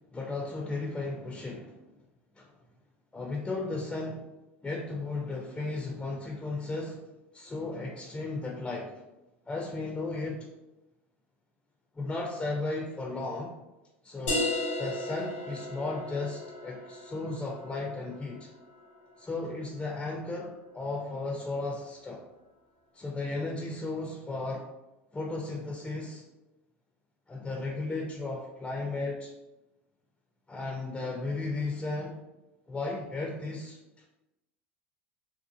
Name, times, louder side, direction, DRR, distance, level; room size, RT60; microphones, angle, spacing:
voice 1, 0.1-1.8 2.4-2.5 3.1-4.3 4.6-7.0 7.3-8.9 9.5-10.5 12.0-13.5 14.0-14.5 14.8-18.5 19.2-22.2 22.9-24.7 25.1-26.2 27.3-29.3 30.5-32.2 32.7-33.8, left 3 dB, 15° left, 0 dB, 0.4 m, -35 dB
sound 1, 14.3-19.6, left 1 dB, 70° left, 0.7 m, -36 dB
2.8 x 2.0 x 2.5 m, 0.99 s
hypercardioid pair, 85°, 7 cm